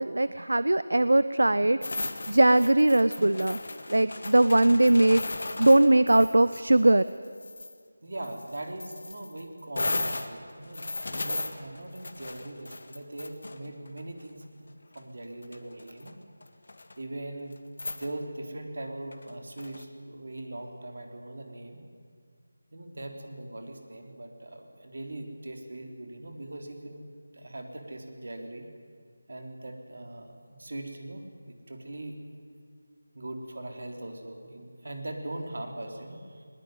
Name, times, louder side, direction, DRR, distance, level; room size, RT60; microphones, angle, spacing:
voice 1, 0.0-1.8 2.3-3.6 3.9-5.2 5.6-7.0, right 1 dB, 80° right, 15 dB, 0.7 m, -20 dB
sound 1, 1.8-6.6 7.0-7.7 8.2-14.0 14.9-15.0 15.4-16.1 16.4-16.9 17.5-17.6 17.8-18.1 19.1-19.8, left 2 dB, 60° left, 1.8 m, -36 dB
voice 2, 8.0-16.1 17.0-17.5 18.0-21.8 22.7-27.0 27.3-28.7 29.3-30.3 30.6-32.2 33.1-36.5, right 1 dB, 65° right, 4 dB, 3.7 m, -40 dB
20.5 x 20.0 x 9.2 m, 2.1 s
figure-of-eight pair, 170°, 0 cm